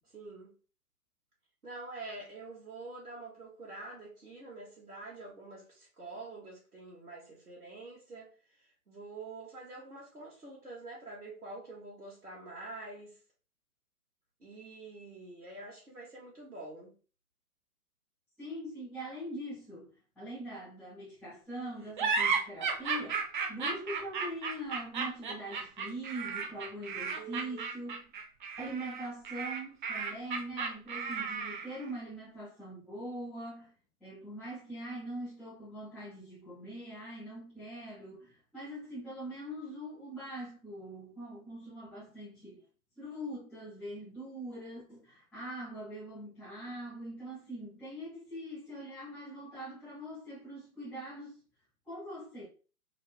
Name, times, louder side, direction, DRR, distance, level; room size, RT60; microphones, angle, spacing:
voice 1, 0.1-0.5 1.6-13.2 14.4-16.9 27.2-27.6, right 2 dB, 80° right, 1.7 m, -46 dB
voice 2, 18.4-19.9 20.2-23.2 23.5-28.1 28.6-33.7 34.0-42.6 43.0-51.4 51.9-52.5, right 1 dB, ahead, 0.3 m, -42 dB
sound 1, 22.0-31.8, right 5 dB, 35° right, 0.7 m, -34 dB
3.9 x 2.7 x 3.4 m
figure-of-eight pair, 125°, 45 cm